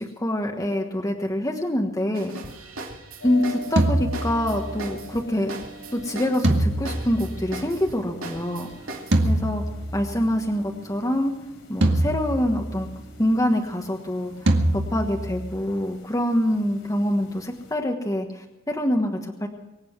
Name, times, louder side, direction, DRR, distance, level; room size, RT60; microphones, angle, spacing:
voice 1, 0.0-2.3 3.2-5.5 5.9-8.7 9.2-9.6 9.9-11.3 11.7-12.9 13.2-19.5, left 1 dB, 15° left, 2 dB, 1.4 m, -25 dB
sound 1, 2.1-9.4, right 2 dB, 85° right, 2.7 m, -39 dB
sound 2, 3.2-17.7, right 2 dB, 85° left, 3.8 m, -44 dB
sound 3, 3.8-4.9 6.4-8.0 9.1-10.3 11.8-13.0 14.5-15.6, right 1 dB, 60° right, 1.9 m, -24 dB
24.0 x 8.8 x 6.0 m, 1.0 s
head